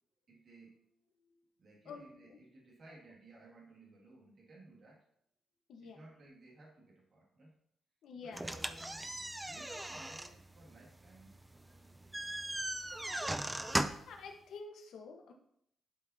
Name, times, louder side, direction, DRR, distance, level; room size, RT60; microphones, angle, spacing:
voice 1, 0.3-5.0 5.8-7.5 8.1-9.1 9.4-11.4, right 2 dB, 45° right, -3 dB, 2.3 m, -58 dB
voice 2, 1.8-2.4 5.7-6.0 8.0-8.4 14.0-15.3, left 4 dB, 70° left, 2 dB, 1.1 m, -49 dB
sound 1, 8.3-14.2, right 1 dB, 10° right, 0.4 m, -38 dB
11.5 x 5.5 x 2.8 m, 0.71 s
cardioid pair, 155°, 0 cm